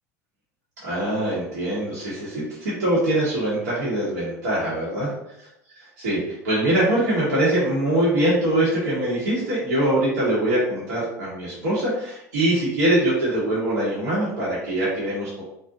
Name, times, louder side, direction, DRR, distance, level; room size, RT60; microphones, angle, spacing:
voice 1, 0.8-5.1 6.0-15.4, right 1 dB, 85° right, -8 dB, 0.9 m, -23 dB
2.5 x 2.0 x 2.6 m, 0.81 s
hypercardioid pair, 90°, 9 cm